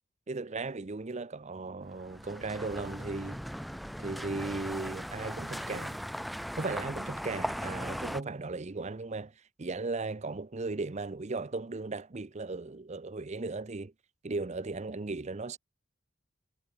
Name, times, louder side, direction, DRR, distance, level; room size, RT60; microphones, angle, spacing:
voice 1, 0.3-3.4 4.0-6.0 6.6-9.3 9.6-13.9 14.2-15.6, right 3 dB, 35° right, 0.7 m, -36 dB
sound 1, 1.9-8.2, equal, ahead, 1.8 m, -38 dB
head